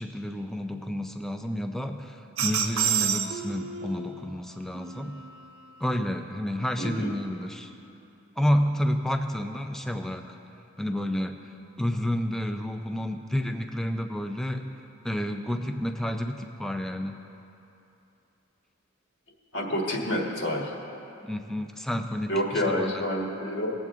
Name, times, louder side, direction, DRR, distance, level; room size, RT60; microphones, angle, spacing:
voice 1, 0.0-5.2 5.8-7.7 8.4-10.3 10.8-11.3 11.8-14.7 15.0-17.1 21.2-23.0, equal, ahead, 6 dB, 0.5 m, -30 dB
sound 1, 2.4-4.1 4.7-5.9, right 8 dB, 90° right, 0.9 m, -30 dB
voice 2, 6.8-7.1 19.5-20.7 22.3-23.7, equal, 65° left, -1 dB, 1.5 m, -28 dB
19.5 x 7.7 x 3.7 m, 2.8 s
head